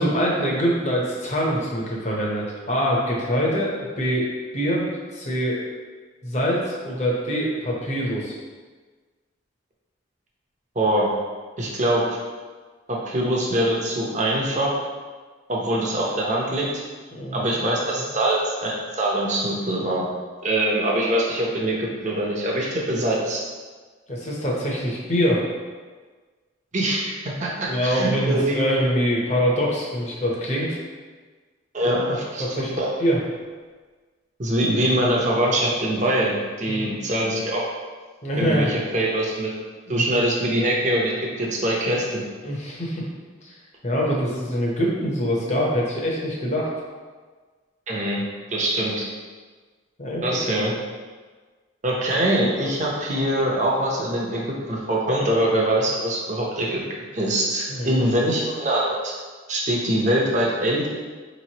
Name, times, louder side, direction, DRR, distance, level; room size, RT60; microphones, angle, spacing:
voice 1, 0.0-5.6 6.2-8.4 17.1-17.5 24.1-25.4 27.6-30.8 31.8-32.0 32.4-32.7 33.0-33.2 36.7-36.9 38.2-38.7 39.9-40.0 42.4-43.0 43.4-43.6 43.8-46.7 50.0-50.2 57.7-58.0, equal, 35° left, -3 dB, 0.8 m, -24 dB
voice 2, 10.7-11.1 11.6-12.2 12.9-14.7 15.5-16.7 17.3-20.1 20.4-23.4 26.7-28.6 31.7-32.9 34.4-37.6 38.3-39.5 39.9-41.1 41.4-42.1 47.9-48.2 48.5-49.0 50.2-50.7 51.8-56.8 57.1-59.1 59.5-60.9, right 1 dB, 35° right, -3 dB, 0.7 m, -23 dB
5.0 x 3.1 x 2.9 m, 1.4 s
head